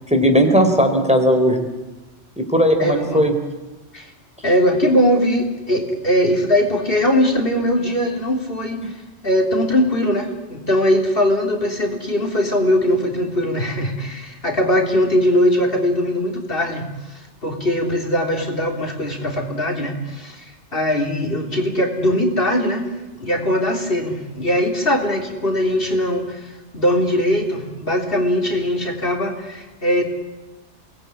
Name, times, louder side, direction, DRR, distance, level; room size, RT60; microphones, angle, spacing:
voice 1, 0.1-1.7 2.4-3.3, equal, 5° right, 4 dB, 3.9 m, -16 dB
voice 2, 2.8-3.2 3.9-4.1 4.4-22.9 23.1-30.0, left 1 dB, 50° left, 2 dB, 3.7 m, -20 dB
29.5 x 20.0 x 9.8 m, 1.1 s
omnidirectional pair, 1.2 m